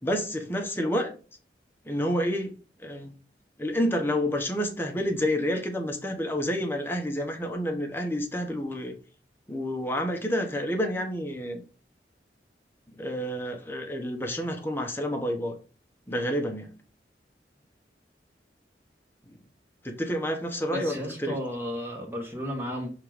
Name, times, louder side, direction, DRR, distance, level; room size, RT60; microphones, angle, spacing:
voice 1, 0.0-1.1 1.8-2.5 2.8-3.1 3.6-9.0 9.5-11.6 13.0-15.6 16.1-16.7 19.3-19.4 19.8-21.4, equal, 10° left, 1.1 m, -29 dB
voice 2, 20.7-22.9, equal, 15° right, 1.4 m, -33 dB
6.5 x 3.8 x 4.9 m
head